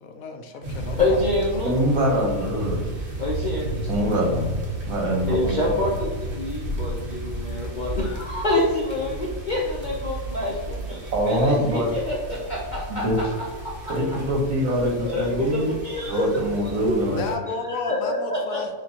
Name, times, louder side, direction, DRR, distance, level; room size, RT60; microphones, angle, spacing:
voice 1, 0.0-1.2 1.6-1.7 17.1-18.7, left 4 dB, 75° left, 5 dB, 1.0 m, -32 dB
sound 1, 0.6-17.4, right 1 dB, 45° right, 0.9 m, -33 dB
voice 2, 1.0-1.7 3.2-3.8 5.3-14.2 14.8-17.1 17.7-18.6, left 1 dB, 50° left, -4 dB, 0.6 m, -27 dB
voice 3, 1.6-2.9 3.9-4.5 4.9-5.6 11.1-11.9 12.9-13.2 13.9-15.7 16.0-17.2, equal, 70° right, 0 dB, 1.5 m, -24 dB
7.0 x 2.5 x 2.8 m, 1.3 s
omnidirectional pair, 1.5 m